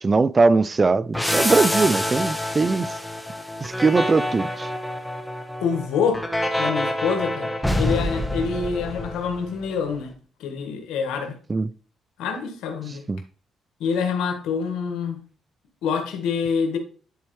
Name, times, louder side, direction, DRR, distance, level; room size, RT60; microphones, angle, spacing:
voice 1, 0.0-3.0 3.6-4.7 11.5-11.7 13.1-13.2, right 4 dB, 30° right, 0.3 m, -20 dB
sound 1, 1.1-9.6, left 1 dB, 5° left, 1.1 m, -26 dB
voice 2, 5.6-6.2 6.6-10.1 10.4-11.4 12.2-13.0 13.8-15.2 15.8-16.8, left 6 dB, 90° left, 1.6 m, -26 dB
10.5 x 4.3 x 3.2 m
cardioid pair, 90°, 0 cm